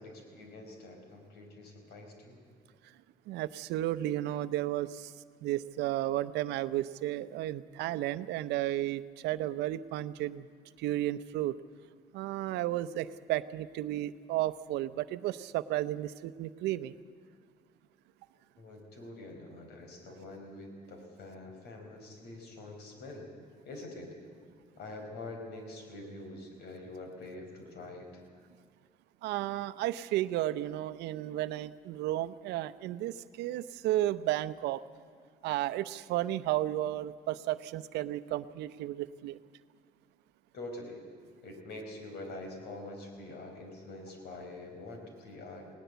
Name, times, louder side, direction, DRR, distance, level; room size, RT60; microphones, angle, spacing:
voice 1, 0.0-2.4 18.6-23.3 23.6-24.1 24.8-28.2 40.5-41.0 41.4-45.8, left 2 dB, 75° left, 4 dB, 5.0 m, -45 dB
voice 2, 3.3-5.1 5.4-10.5 10.8-11.5 12.1-16.9 29.2-34.8 35.4-39.4, right 14 dB, 85° right, 14 dB, 0.7 m, -33 dB
20.0 x 18.5 x 8.1 m, 2.1 s
cardioid pair, 110°, 17 cm